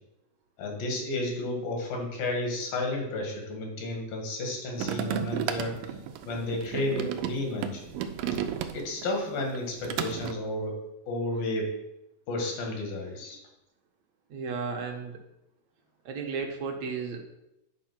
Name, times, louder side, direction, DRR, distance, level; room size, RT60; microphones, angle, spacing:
voice 1, 0.6-5.7 6.3-7.8 8.7-10.8 11.1-11.7 12.3-13.4, left 2 dB, 90° left, 1 dB, 3.6 m, -32 dB
sound 1, 4.8-9.1 9.4-10.3, right 8 dB, 85° right, 2.4 m, -33 dB
voice 2, 14.3-15.2 16.1-17.2, right 5 dB, 65° right, 3 dB, 1.9 m, -34 dB
9.1 x 4.8 x 6.0 m, 0.89 s
omnidirectional pair, 3.9 m